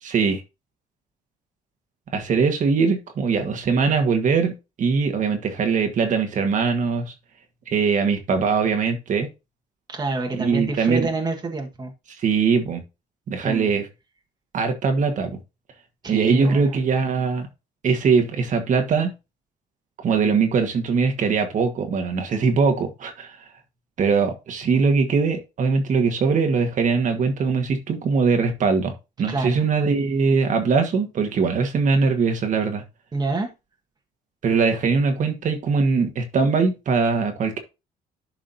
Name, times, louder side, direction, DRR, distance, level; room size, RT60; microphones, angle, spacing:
voice 1, 0.0-0.4 2.1-4.5 4.8-7.1 7.7-9.3 10.4-11.1 12.2-12.8 13.3-13.9 14.5-15.4 16.1-17.5 17.8-19.1 20.0-23.4 24.0-32.8 34.4-37.6, right 5 dB, 50° right, 1.6 m, -21 dB
voice 2, 9.9-11.9 13.4-13.7 16.0-16.7 29.2-29.6 33.1-33.5, right 3 dB, 25° right, 1.5 m, -27 dB
11.5 x 4.9 x 2.7 m
cardioid pair, 110°, 17 cm